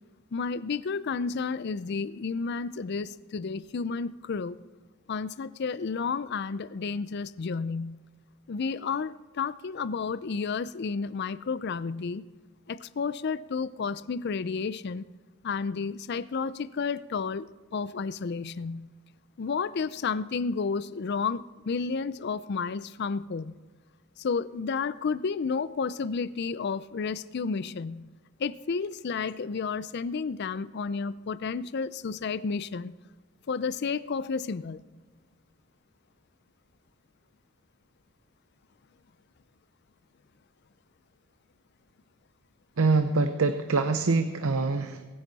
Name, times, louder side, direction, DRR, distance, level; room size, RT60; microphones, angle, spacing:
voice 1, 0.3-4.6 5.1-8.0 8.5-12.3 12.7-15.1 15.4-18.9 19.4-23.6 24.2-28.1 28.4-32.9 33.5-34.8, left 5 dB, 50° left, 17 dB, 0.4 m, -31 dB
voice 2, 42.8-45.0, right 3 dB, 75° right, 9 dB, 0.7 m, -25 dB
22.5 x 9.9 x 4.1 m, 1.3 s
head